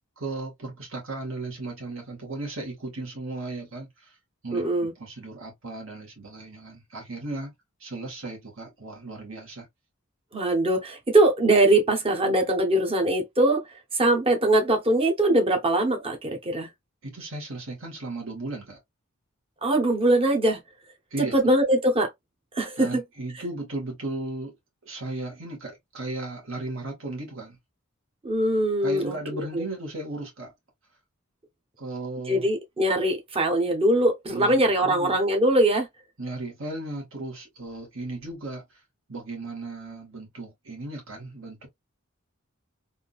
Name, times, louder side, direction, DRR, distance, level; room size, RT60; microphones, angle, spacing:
voice 1, 0.2-4.1 4.4-4.6 5.0-7.5 7.8-9.7 17.0-18.8 21.1-21.4 22.8-24.5 24.9-27.6 28.8-30.5 31.8-32.5 34.3-35.2 36.2-38.6 39.1-41.7, right 2 dB, 65° right, 1.7 m, -35 dB
voice 2, 4.5-4.9 10.3-13.6 13.9-16.7 19.6-20.6 21.3-22.1 22.5-23.0 28.2-29.6 32.3-35.9, right 1 dB, 25° right, 1.0 m, -22 dB
3.6 x 2.6 x 2.4 m
head